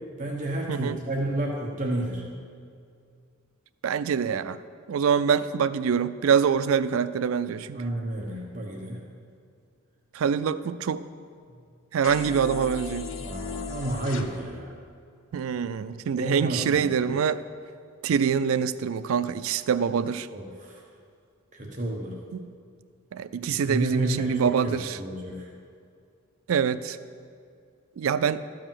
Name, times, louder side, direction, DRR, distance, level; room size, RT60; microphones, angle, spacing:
voice 1, 0.2-2.2 7.7-9.0 11.5-11.6 13.2-14.8 16.1-16.9 20.3-20.8 21.5-22.2 23.4-25.5, right 1 dB, 35° right, -1 dB, 1.0 m, -31 dB
voice 2, 0.7-1.0 3.8-4.6 4.9-7.8 10.1-11.0 11.9-13.1 15.3-17.4 18.0-20.3 22.3-22.5 23.1-25.0 26.5-27.0 28.0-28.4, right 7 dB, 75° right, 14 dB, 0.4 m, -25 dB
sound 1, 12.0-14.2, left 4 dB, 65° left, 0.7 m, -36 dB
13.0 x 5.0 x 7.4 m, 2.3 s
head